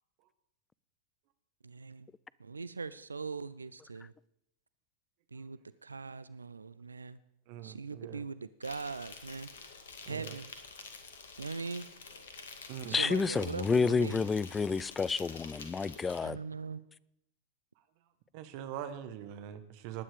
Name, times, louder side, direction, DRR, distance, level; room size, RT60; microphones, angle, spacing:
voice 1, 1.6-2.1 2.4-4.1 5.3-7.2 7.6-9.5 10.1-10.6 11.4-11.9 12.9-14.2 16.2-16.8, right 4 dB, 75° right, 16 dB, 0.5 m, -41 dB
voice 2, 7.5-8.2 10.0-10.4 12.7-13.0 18.3-20.0, right 10 dB, 45° right, 10 dB, 1.6 m, -42 dB
Insect, 8.6-16.2, left 5 dB, 65° left, 2.1 m, -49 dB
voice 3, 12.9-16.4, left 5 dB, 15° left, 21 dB, 0.4 m, -30 dB
19.0 x 9.8 x 5.1 m, 0.79 s
figure-of-eight pair, 90°, 0 cm